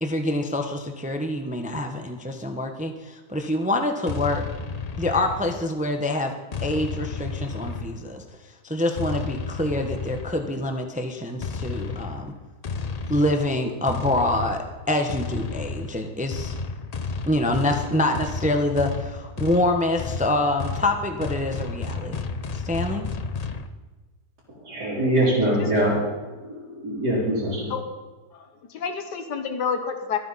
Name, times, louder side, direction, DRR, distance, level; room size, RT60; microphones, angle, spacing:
voice 1, 0.0-4.4 5.0-6.3 6.6-8.2 8.6-12.3 13.1-16.5 17.3-23.1, left 1 dB, 5° right, 5 dB, 0.8 m, -26 dB
sound 1, 4.1-5.8 6.5-8.2 9.0-10.6 11.4-23.7, left 4 dB, 60° left, 0.4 m, -32 dB
voice 2, 24.6-27.7, right 1 dB, 75° right, -9 dB, 4.5 m, -24 dB
voice 3, 28.3-30.2, left 6 dB, 85° left, 7 dB, 1.8 m, -29 dB
25.0 x 9.0 x 4.2 m, 1.2 s
omnidirectional pair, 1.8 m